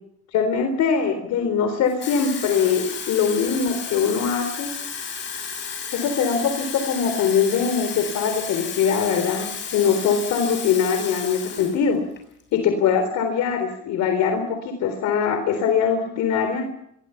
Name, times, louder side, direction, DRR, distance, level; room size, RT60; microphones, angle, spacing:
voice 1, 0.3-4.7 5.9-12.0 12.5-16.7, left 6 dB, 60° left, 7 dB, 3.9 m, -22 dB
Water tap faucet / Fill (with liquid), 1.9-11.8 12.2-12.4, left 6 dB, 35° left, 7.0 m, -33 dB
27.0 x 22.0 x 5.8 m, 0.76 s
cardioid pair, 135°, 32 cm